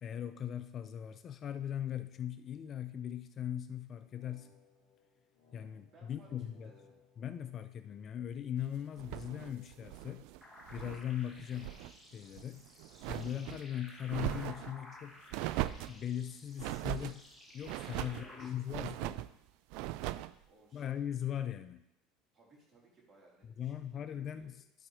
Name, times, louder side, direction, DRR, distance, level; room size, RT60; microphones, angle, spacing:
voice 1, 0.0-4.5 5.5-6.7 7.2-10.2 10.7-11.8 12.1-12.6 13.1-15.2 15.9-17.2 17.5-19.1 20.7-21.8 23.6-24.5, left 10 dB, 40° left, 10 dB, 0.4 m, -39 dB
sound 1, 3.9-8.2 9.1-10.3, left 6 dB, 80° left, 2.2 m, -65 dB
voice 2, 5.9-6.9 18.0-19.2 20.5-21.3 22.3-24.5, right 2 dB, 35° right, -2 dB, 3.0 m, -62 dB
sound 2, 9.0-11.1 11.4-11.9 12.3-13.6 14.1-14.7 15.3-16.0 16.6-17.2 17.6-18.3 18.7-19.3 19.7-20.3, right 15 dB, 70° right, 0.3 m, -39 dB
sound 3, 10.4-18.5, left 1 dB, ahead, 1.5 m, -55 dB
11.5 x 4.2 x 4.9 m, 0.82 s
supercardioid pair, 125°, 0 cm